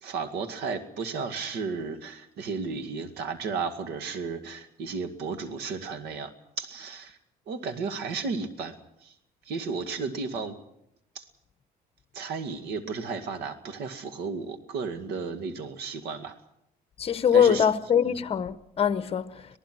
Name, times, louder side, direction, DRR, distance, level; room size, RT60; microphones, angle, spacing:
voice 1, 0.0-6.3 6.6-7.2 7.5-8.8 9.0-9.1 9.4-10.5 11.2-11.3 12.1-16.4 17.3-17.7 18.0-18.2, right 4 dB, 75° right, 2.1 m, -33 dB
voice 2, 17.0-19.5, left 8 dB, 35° left, 1.1 m, -23 dB
26.0 x 18.5 x 6.2 m
cardioid pair, 110°, 17 cm